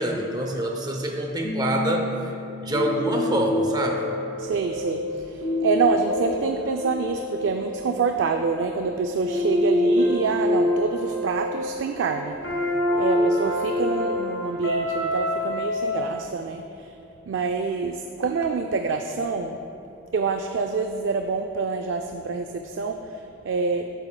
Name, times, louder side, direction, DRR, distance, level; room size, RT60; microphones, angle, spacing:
voice 1, 0.0-2.3 2.6-4.1, right 1 dB, 20° right, 2 dB, 0.6 m, -26 dB
sound 1, 1.4-16.0, left 1 dB, 80° left, 1.7 m, -27 dB
voice 2, 4.4-12.4 13.0-16.9 17.3-19.6 20.1-23.9, right 4 dB, 65° right, 5 dB, 0.3 m, -27 dB
12.5 x 7.4 x 2.2 m, 2.8 s
head